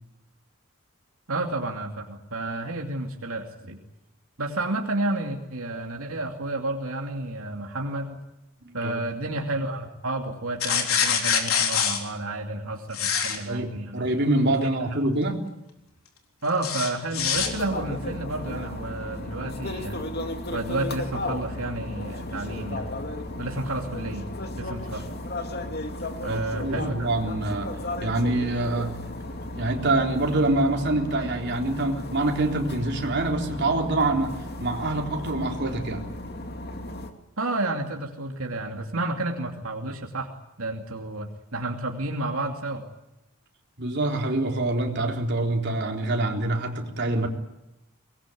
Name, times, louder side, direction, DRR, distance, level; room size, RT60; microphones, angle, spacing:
voice 1, 1.3-3.8 4.4-8.2 8.7-14.1 14.6-15.0 16.4-20.0 20.5-22.9 23.4-24.3 24.6-25.1 26.2-27.1 37.4-40.3 40.6-42.8, right 2 dB, 85° right, 2 dB, 2.7 m, -31 dB
sound 1, 10.6-12.0 12.9-13.4 16.6-17.5, left 7 dB, 90° left, 3.9 m, -24 dB
voice 2, 13.5-15.5 26.3-27.7 28.0-29.0 29.6-34.3 34.6-36.1 43.8-47.3, right 2 dB, 55° right, 1 dB, 3.8 m, -25 dB
sound 2, 17.3-37.1, left 1 dB, 50° left, 2.5 m, -35 dB
24.0 x 20.5 x 9.3 m, 0.93 s
head